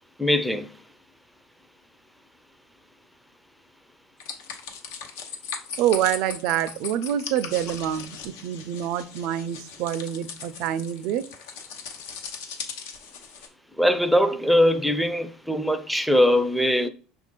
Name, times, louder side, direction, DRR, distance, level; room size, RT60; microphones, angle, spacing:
voice 1, 0.2-0.7 13.8-16.9, equal, ahead, 0.4 m, -21 dB
sound 1, 4.2-13.5, left 6 dB, 90° left, 0.7 m, -38 dB
voice 2, 5.8-11.2, right 11 dB, 65° right, 0.4 m, -26 dB
5.9 x 2.5 x 3.6 m
cardioid pair, 135°, 0 cm